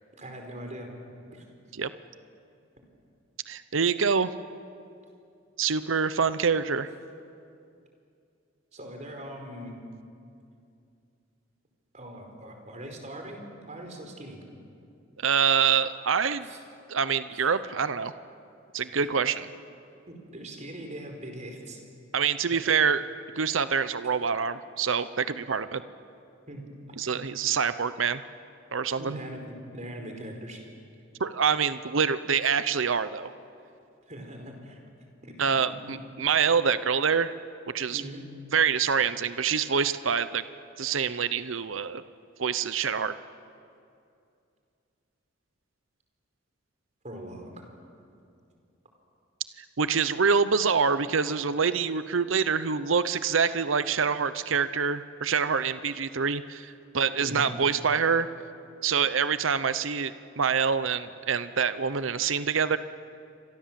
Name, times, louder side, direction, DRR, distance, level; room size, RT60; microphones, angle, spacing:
voice 1, 0.2-0.9 1.3-1.4 8.7-9.8 11.9-14.4 16.4-16.6 17.4-17.5 20.1-21.8 26.5-26.7 27.0-27.2 29.0-30.6 34.1-34.8 35.2-36.0 37.9-38.2 47.0-47.7 57.2-57.5, right 1 dB, 40° right, 3 dB, 4.8 m, -41 dB
voice 2, 3.5-4.3 5.6-6.9 15.2-16.5 16.9-18.1 18.7-19.5 22.1-23.1 23.4-25.8 27.0-28.2 28.7-29.2 31.2-33.3 35.4-37.3 37.7-38.0 38.5-40.4 40.8-42.0 42.4-43.1 49.6-58.3 58.8-62.8, right 6 dB, 80° right, 13 dB, 0.8 m, -26 dB
29.0 x 25.0 x 7.6 m, 2.5 s
head